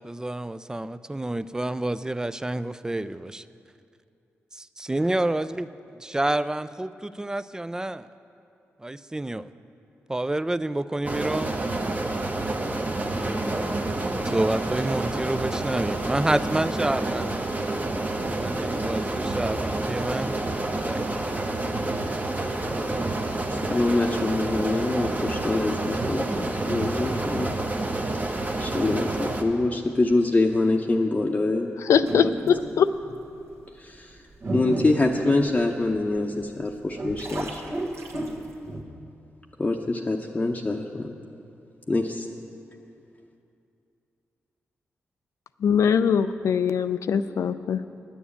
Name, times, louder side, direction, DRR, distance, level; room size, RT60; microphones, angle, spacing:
voice 1, 0.0-3.4 4.8-5.7 6.0-8.1 8.8-9.5 10.1-11.6 13.1-13.7 14.2-17.4 18.2-20.3 20.8-21.3, right 1 dB, 15° right, 14 dB, 0.4 m, -28 dB
sound 1, 11.0-29.4, right 2 dB, 30° right, 1.1 m, -28 dB
voice 2, 23.5-27.5 28.1-28.2 28.6-31.7 33.8-34.2 34.5-37.8 39.6-41.2 41.9-42.3, left 2 dB, 30° left, 0 dB, 0.7 m, -25 dB
voice 3, 31.8-32.9 45.6-47.8, left 7 dB, 75° left, 11 dB, 0.4 m, -22 dB
sound 2, 32.0-32.8 33.4-33.5 34.1-36.2 36.7-38.8, right 1 dB, 65° right, 1.5 m, -32 dB
10.0 x 7.1 x 8.4 m, 2.6 s
supercardioid pair, 50°, 5 cm